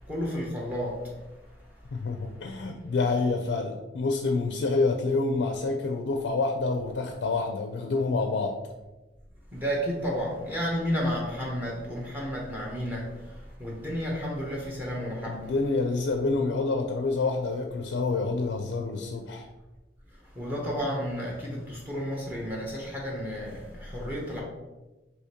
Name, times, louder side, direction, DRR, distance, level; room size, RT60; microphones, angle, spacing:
voice 1, 0.1-1.1 9.5-15.5 20.3-24.4, equal, 10° right, -3 dB, 0.7 m, -32 dB
voice 2, 1.9-8.6 15.2-19.5, left 3 dB, 70° left, 3 dB, 0.4 m, -27 dB
4.9 x 2.9 x 2.8 m, 1.1 s
head